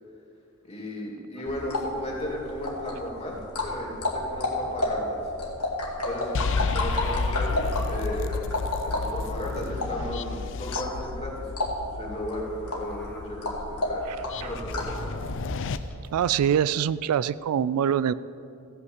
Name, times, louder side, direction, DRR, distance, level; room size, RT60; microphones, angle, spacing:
voice 1, 0.6-5.3 6.0-6.4 6.7-8.4 8.8-14.0 14.4-15.2, left 1 dB, 25° left, -3 dB, 2.7 m, -35 dB
sound 1, 1.5-15.0, left 1 dB, 90° left, 2.0 m, -32 dB
sound 2, 6.3-15.8, left 4 dB, 55° left, 0.4 m, -32 dB
sound 3, 9.1-10.1 10.4-10.5 10.8-11.0 12.2-13.3 13.8-16.1, equal, 5° left, 1.3 m, -40 dB
voice 2, 16.1-18.1, right 9 dB, 80° right, 18 dB, 0.3 m, -24 dB
15.5 x 5.8 x 7.9 m, 2.7 s
head